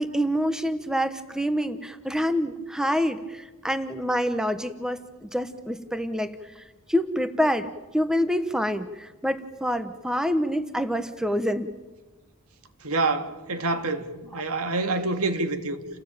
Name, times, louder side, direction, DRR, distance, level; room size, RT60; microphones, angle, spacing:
voice 1, 0.0-11.7, equal, 5° right, 1.1 m, -27 dB
voice 2, 12.8-14.1 14.3-15.8, right 3 dB, 70° right, 2.2 m, -26 dB
29.5 x 19.0 x 9.0 m
head